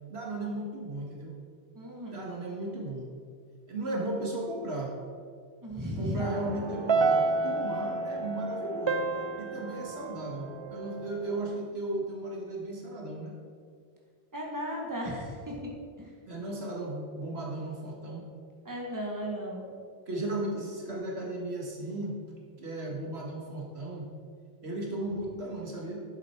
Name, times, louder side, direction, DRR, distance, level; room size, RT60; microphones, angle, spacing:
voice 1, 0.1-1.3 2.0-3.1 3.7-4.9 6.0-9.0 9.4-13.4 16.3-18.2 20.1-22.2 22.6-24.1 24.6-26.0, right 2 dB, 90° right, -1 dB, 2.0 m, -35 dB
voice 2, 1.7-2.3 5.6-6.2 14.3-15.6 16.0-16.1 18.7-19.7, equal, 20° right, -2 dB, 1.7 m, -35 dB
sound 1, 6.2-11.6, right 4 dB, 50° right, 0.3 m, -30 dB
10.5 x 7.6 x 4.5 m, 2.1 s
omnidirectional pair, 1.0 m